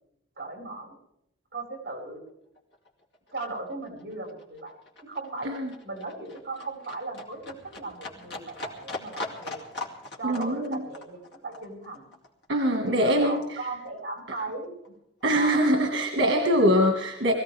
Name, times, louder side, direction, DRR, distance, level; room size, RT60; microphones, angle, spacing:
voice 1, 0.4-1.0 1.5-2.2 3.3-5.5 5.8-9.8 10.2-12.1 12.9-14.9 15.3-15.6, right 2 dB, 50° right, 0 dB, 5.1 m, -37 dB
Livestock farm animals working animals, 2.2-2.3 2.5-13.5 13.9-14.9 15.2-15.3, left 2 dB, 65° left, 2.6 m, -41 dB
voice 2, 10.2-10.8 12.5-13.4 14.3-14.4 15.2-17.3, equal, 75° right, 4 dB, 1.8 m, -23 dB
22.5 x 16.0 x 3.5 m, 0.78 s
head